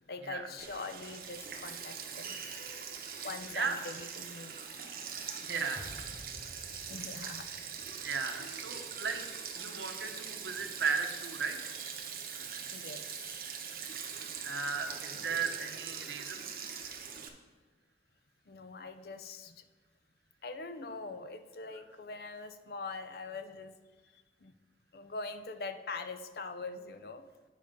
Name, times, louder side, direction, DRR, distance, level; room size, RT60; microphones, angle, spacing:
voice 1, 0.1-4.8 5.2-5.4 6.9-7.6 8.4-8.6 12.7-13.6 15.1-15.2 18.5-19.6 20.4-23.8 24.1-24.5 24.9-27.2, left 3 dB, 60° left, 9 dB, 0.6 m, -43 dB
Sink (filling or washing), 0.6-17.3, right 7 dB, 55° right, 0.9 m, -42 dB
voice 2, 5.4-5.9 8.0-9.2 9.5-11.8 14.4-16.5, right 5 dB, 85° right, 5 dB, 0.9 m, -35 dB
sound 1, 5.8-8.9 9.2-9.5, equal, 5° left, 0.5 m, -52 dB
9.1 x 4.9 x 5.2 m, 1.3 s
head